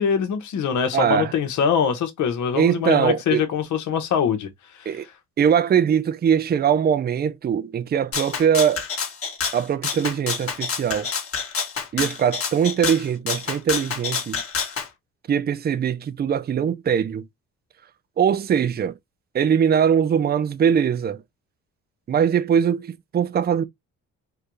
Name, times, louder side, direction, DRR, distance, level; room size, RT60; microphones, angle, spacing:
voice 1, 0.0-4.5 4.8-5.0, left 7 dB, 70° left, 1.2 m, -23 dB
voice 2, 0.9-1.3 2.6-3.4 4.9-5.1 5.4-8.8 9.5-11.1 11.9-14.4 15.3-17.2 18.2-18.9 19.3-21.2 22.1-23.6, right 8 dB, 35° right, 0.5 m, -21 dB
Rattle (instrument), 8.1-14.9, left 6 dB, 50° left, 1.6 m, -28 dB
4.6 x 2.3 x 3.1 m
cardioid pair, 90°, 30 cm